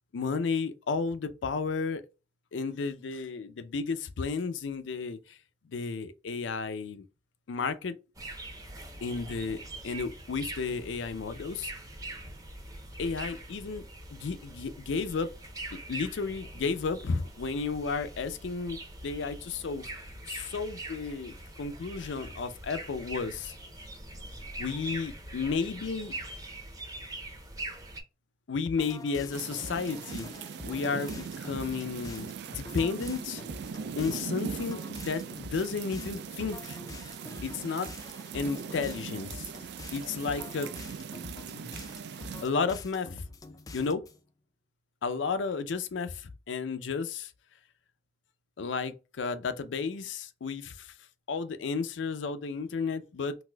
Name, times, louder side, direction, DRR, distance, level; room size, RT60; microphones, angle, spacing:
voice 1, 0.1-2.0 2.5-5.4 5.7-7.0 7.5-8.0 9.0-11.7 13.0-13.8 14.1-15.3 15.7-18.8 19.0-19.9 20.3-23.5 24.6-26.1 28.5-30.3 30.6-33.4 34.0-36.8 37.4-37.9 38.3-39.5 39.9-40.7 41.5-41.8 42.4-43.2 43.7-44.0 45.0-47.3 48.6-50.9 51.3-53.4, left 4 dB, 90° left, 0.5 m, -33 dB
sound 1, 8.1-28.0, right 1 dB, 20° right, 0.7 m, -43 dB
sound 2, 28.7-44.2, left 3 dB, 20° left, 0.3 m, -46 dB
sound 3, 29.3-42.5, right 6 dB, 65° right, 0.3 m, -40 dB
4.0 x 2.5 x 2.2 m
head